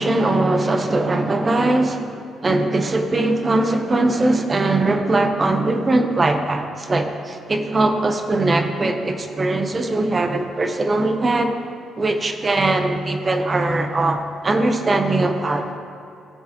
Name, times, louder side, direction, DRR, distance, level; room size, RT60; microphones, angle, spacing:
voice 1, 0.0-2.1 2.4-11.5 12.0-15.8, right 2 dB, 30° right, 6 dB, 0.9 m, -20 dB
16.0 x 7.4 x 3.0 m, 2.5 s
cardioid pair, 90°, 0 cm